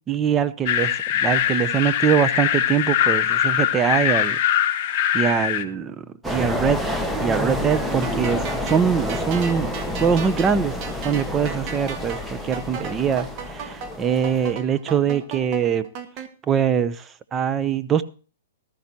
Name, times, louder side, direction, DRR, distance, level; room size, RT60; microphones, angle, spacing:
voice 1, 0.1-4.4 4.8-6.9 7.2-10.7 11.0-15.9 16.5-18.0, right 7 dB, 20° right, 0.7 m, -23 dB
sound 1, 0.7-5.6, left 10 dB, 40° left, 1.2 m, -22 dB
sound 2, 6.2-14.5, left 1 dB, 5° right, 1.1 m, -29 dB
sound 3, 7.7-16.3, right 6 dB, 35° right, 1.5 m, -36 dB
14.5 x 13.0 x 2.8 m
hypercardioid pair, 130°, 0 cm